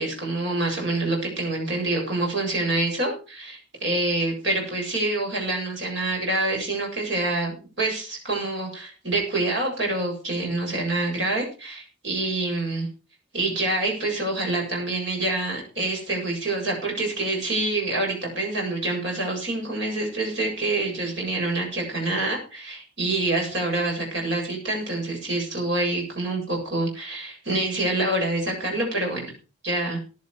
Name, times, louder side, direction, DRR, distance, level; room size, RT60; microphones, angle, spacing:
voice 1, 0.0-12.9 13.3-29.3 29.6-30.0, right 2 dB, 65° right, 0 dB, 7.8 m, -26 dB
16.0 x 10.5 x 5.0 m, 0.34 s
head